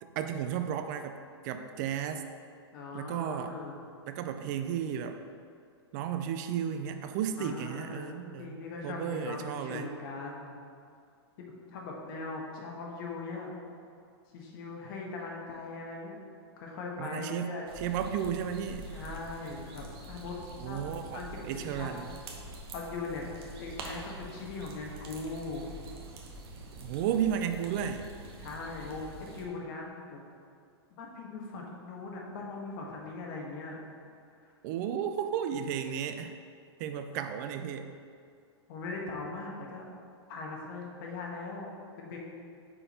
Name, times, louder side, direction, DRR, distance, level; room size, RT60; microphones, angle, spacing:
voice 1, 0.0-2.2 2.9-3.6 4.1-5.2 5.9-8.6 8.8-9.9 17.0-18.9 20.6-22.1 26.8-28.1 34.6-36.3 36.8-37.9, right 8 dB, 40° right, 8 dB, 0.4 m, -33 dB
voice 2, 2.7-3.7 7.4-10.6 11.4-13.5 14.3-16.2 16.6-17.6 18.9-20.4 20.6-21.9 22.7-23.3 23.6-25.6 28.4-30.2 30.9-33.8 34.4-34.5 38.7-39.9 40.3-42.2, left 3 dB, 50° left, -1 dB, 1.3 m, -40 dB
sound 1, 17.7-29.5, right 2 dB, 60° right, 1.0 m, -46 dB
5.2 x 4.5 x 4.2 m, 2.3 s
hypercardioid pair, 135°, 14 cm